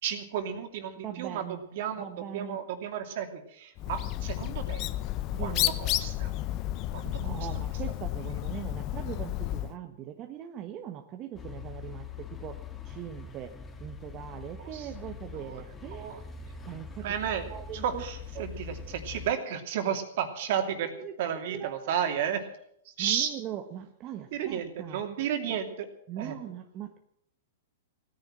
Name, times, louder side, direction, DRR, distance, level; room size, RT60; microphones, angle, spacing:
voice 1, 0.0-1.4 1.7-4.8 5.4-6.3 6.9-7.4 14.7-14.9 15.5-15.6 15.9-16.2 17.0-17.4 17.8-20.9 21.2-22.4 23.0-23.3 24.3-25.9 26.2-26.3, right 9 dB, 55° right, 6 dB, 2.8 m, -32 dB
voice 2, 0.9-1.6 1.9-2.6 5.3-5.8 7.0-13.5 13.8-16.1 16.6-17.2 17.5-18.0 18.3-18.5 20.6-21.2 21.5-21.9 22.2-22.3 23.0-25.0 26.1-27.0, right 10 dB, 35° right, 5 dB, 1.2 m, -41 dB
Bird, 3.8-9.8, left 15 dB, 40° left, 0.7 m, -32 dB
sound 1, 11.3-19.3, left 5 dB, 15° left, 1.7 m, -43 dB
17.0 x 10.5 x 7.7 m, 0.73 s
hypercardioid pair, 130°, 0 cm